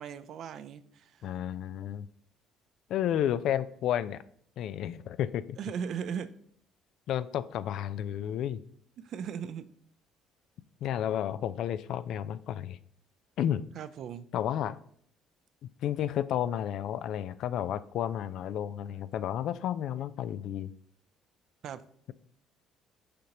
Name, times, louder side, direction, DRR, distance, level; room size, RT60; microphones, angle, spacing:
voice 1, 0.0-1.2 5.6-6.3 9.0-9.7 13.8-14.3 21.6-21.8, right 7 dB, 60° right, 12 dB, 0.4 m, -38 dB
voice 2, 1.2-2.1 2.9-4.2 4.6-5.6 7.1-8.6 10.8-12.8 13.4-13.6 14.3-14.8 15.8-20.7, left 10 dB, 65° left, 15 dB, 0.3 m, -31 dB
6.6 x 5.1 x 2.9 m, 0.63 s
supercardioid pair, 90°, 0 cm